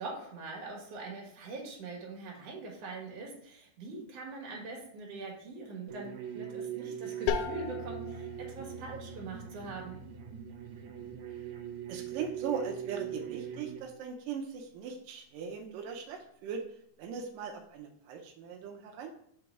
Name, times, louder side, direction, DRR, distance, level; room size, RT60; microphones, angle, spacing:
voice 1, 0.0-10.0, right 3 dB, 55° right, -1 dB, 2.5 m, -43 dB
sound 1, 5.9-13.8, right 9 dB, 70° right, 1.9 m, -41 dB
sound 2, 7.3-12.8, left 7 dB, 90° left, 2.3 m, -40 dB
voice 2, 11.9-16.6 17.0-19.1, right 6 dB, 85° right, 2 dB, 2.3 m, -39 dB
6.5 x 3.9 x 4.7 m, 0.68 s
omnidirectional pair, 3.8 m